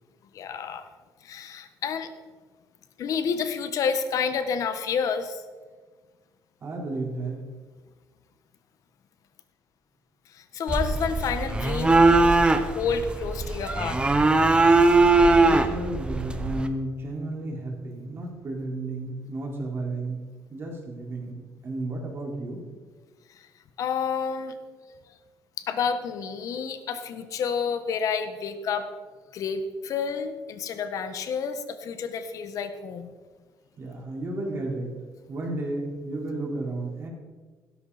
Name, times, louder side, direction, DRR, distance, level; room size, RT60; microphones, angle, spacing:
voice 1, 0.3-0.9 1.2-2.1 3.0-5.4 10.3-12.3 12.7-14.0 23.8-24.5 25.6-28.9 29.3-33.1, left 6 dB, 60° left, 9 dB, 1.5 m, -29 dB
voice 2, 6.6-7.4 15.2-20.2 20.5-22.6 33.8-35.0 35.3-37.1, right 2 dB, 40° right, -1 dB, 4.5 m, -33 dB
sound 1, 10.7-16.7, right 3 dB, 15° right, 1.1 m, -20 dB
16.5 x 13.5 x 4.3 m, 1.4 s
cardioid pair, 125°, 6 cm